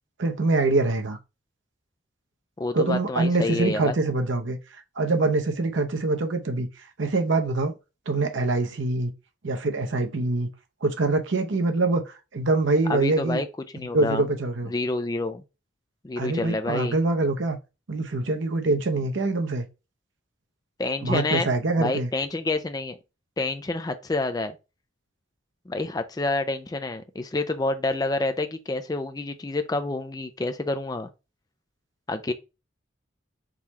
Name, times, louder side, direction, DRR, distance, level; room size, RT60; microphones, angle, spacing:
voice 1, 0.2-1.2 2.7-4.6 5.0-6.7 7.0-7.7 8.1-9.1 9.4-10.5 10.8-13.4 13.9-14.7 16.2-17.6 17.9-19.7 21.0-22.1, right 2 dB, 80° right, 0.8 m, -24 dB
voice 2, 2.6-3.9 12.9-13.5 13.7-14.2 14.7-15.4 16.0-17.0 20.8-21.5 21.8-23.0 23.4-24.5 25.7-31.1 32.1-32.3, left 2 dB, 20° left, 0.4 m, -28 dB
3.8 x 3.1 x 4.1 m
head